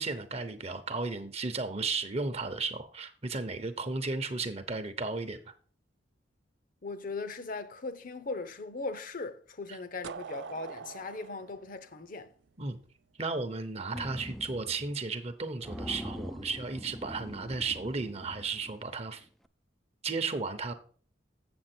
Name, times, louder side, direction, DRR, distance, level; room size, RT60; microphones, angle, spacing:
voice 1, 0.0-5.5 9.7-9.8 12.6-12.8 13.2-19.2 20.0-20.7, right 3 dB, 35° right, 0.8 m, -34 dB
voice 2, 6.8-12.3, left 3 dB, 45° left, 0.7 m, -39 dB
sound 1, 10.0-12.9, right 6 dB, 65° right, 0.4 m, -44 dB
sound 2, 13.9-14.9 15.2-15.3 15.6-19.0, equal, ahead, 0.3 m, -43 dB
7.9 x 7.1 x 4.4 m
head